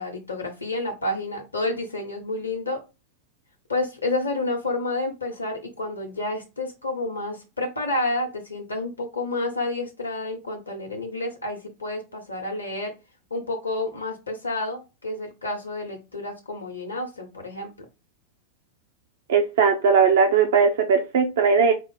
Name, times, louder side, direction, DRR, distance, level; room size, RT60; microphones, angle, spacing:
voice 1, 0.0-2.8 3.7-12.9 13.3-17.7, left 2 dB, 75° left, 0.6 m, -29 dB
voice 2, 19.3-21.7, right 5 dB, 60° right, 0.5 m, -19 dB
4.5 x 2.0 x 3.2 m
figure-of-eight pair, 90°, 0 cm